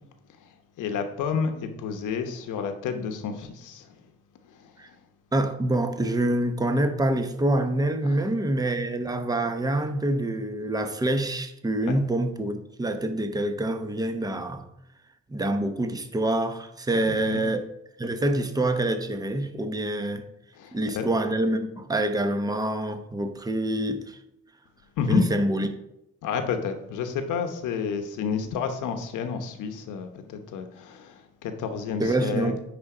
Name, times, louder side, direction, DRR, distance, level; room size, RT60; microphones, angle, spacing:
voice 1, 0.8-3.9 8.0-8.2 11.9-12.0 17.0-17.4 20.6-21.1 25.0-25.3 26.2-31.1 31.4-32.5, left 6 dB, 85° left, 6 dB, 1.0 m, -30 dB
voice 2, 5.3-14.7 15.3-17.6 18.0-20.2 20.7-24.2 25.1-25.7 32.0-32.6, right 1 dB, 10° right, 7 dB, 0.8 m, -26 dB
9.6 x 3.7 x 5.0 m, 0.83 s
cardioid pair, 90°, 30 cm